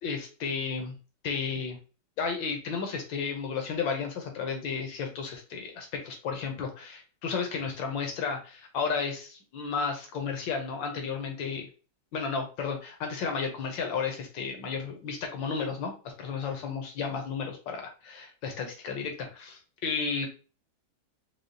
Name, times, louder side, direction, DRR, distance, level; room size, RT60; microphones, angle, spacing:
voice 1, 0.0-1.0 1.2-1.8 2.2-11.7 12.1-15.9 16.2-20.3, left 5 dB, 75° left, 3 dB, 1.6 m, -33 dB
4.9 x 2.3 x 2.7 m, 0.34 s
omnidirectional pair, 2.1 m